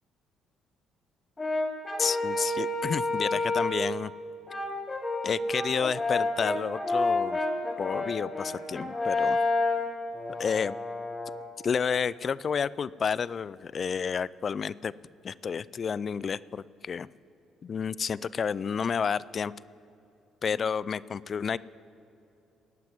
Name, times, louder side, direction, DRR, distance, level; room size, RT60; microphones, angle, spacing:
Brass instrument, 1.4-3.9 4.5-11.4, left 2 dB, 30° left, 2.6 m, -29 dB
voice 1, 2.0-4.1 5.2-7.4 7.8-9.4 10.4-10.8 11.6-14.9 15.2-17.1 17.6-19.5 20.4-21.6, left 6 dB, 50° left, 20 dB, 0.3 m, -30 dB
17.0 x 5.9 x 9.3 m, 2.8 s
hypercardioid pair, 50°, 0 cm